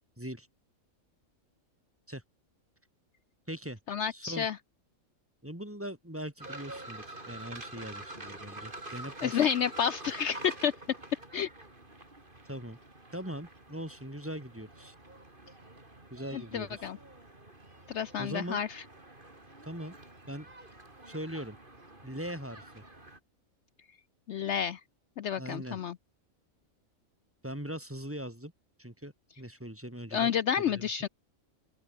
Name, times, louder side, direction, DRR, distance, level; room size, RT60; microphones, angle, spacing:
voice 1, 0.2-0.5 2.1-2.2 3.5-3.8 4.1-4.5 5.4-9.4 12.5-12.8 13.1-14.9 16.1-16.9 18.2-18.6 19.6-19.9 20.3-20.5 21.1-21.6 22.0-22.8 25.4-25.8 27.4-28.5 28.8-30.8, equal, 10° right, 2.7 m, -40 dB
voice 2, 3.9-4.6 9.2-10.7 11.3-11.5 16.3-17.0 17.9-18.8 24.3-24.8 25.2-26.0 30.1-31.1, left 8 dB, 65° left, 0.9 m, -30 dB
sound 1, 6.4-23.2, right 2 dB, 40° right, 4.3 m, -47 dB
open air
omnidirectional pair, 1.4 m